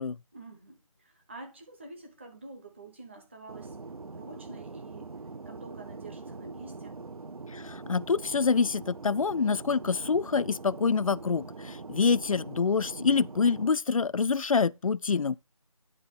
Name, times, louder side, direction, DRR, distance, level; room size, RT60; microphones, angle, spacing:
voice 1, 0.3-3.8 4.1-5.1 5.5-7.0, right 2 dB, 20° right, 1.0 m, -47 dB
Fixed-wing aircraft airplane, 3.5-13.7, right 3 dB, 75° right, 0.8 m, -43 dB
voice 2, 7.5-15.4, left 5 dB, 70° left, 0.4 m, -26 dB
9.8 x 3.7 x 5.3 m
figure-of-eight pair, 170°, 18 cm